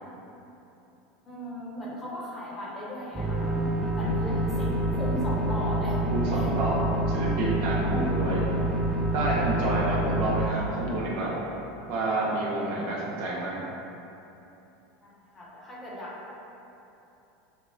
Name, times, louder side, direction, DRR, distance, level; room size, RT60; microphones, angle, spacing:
voice 1, 1.2-3.5 4.0-6.0 6.3-6.6 7.8-8.4 15.0-16.1, equal, 30° left, -6 dB, 0.9 m, -37 dB
sound 1, 3.1-10.5, right 1 dB, 10° right, 0.4 m, -27 dB
voice 2, 6.1-8.4 9.1-11.4 11.9-13.7, right 2 dB, 65° right, -4 dB, 0.5 m, -29 dB
4.6 x 2.0 x 2.3 m, 2.9 s
hypercardioid pair, 85°, 0 cm